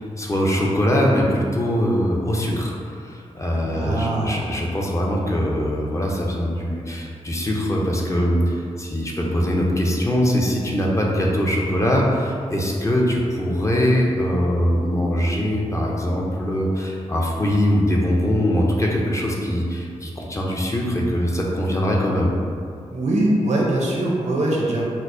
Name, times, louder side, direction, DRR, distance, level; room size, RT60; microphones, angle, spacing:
voice 1, 0.0-22.3, equal, 25° left, -3 dB, 0.5 m, -22 dB
voice 2, 3.7-4.4 22.9-24.8, right 1 dB, 70° right, -3 dB, 0.6 m, -22 dB
4.3 x 2.0 x 2.5 m, 2.4 s
cardioid pair, 75°, 12 cm